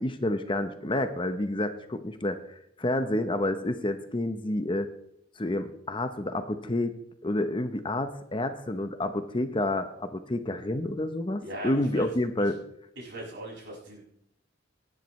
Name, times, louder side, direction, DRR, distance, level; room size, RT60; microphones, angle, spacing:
voice 1, 0.0-4.9 5.4-6.9 7.2-12.6, left 1 dB, 25° left, 9 dB, 0.8 m, -29 dB
voice 2, 11.4-12.1 13.0-14.0, right 1 dB, 60° right, -3 dB, 6.1 m, -39 dB
18.5 x 10.5 x 3.2 m, 0.72 s
head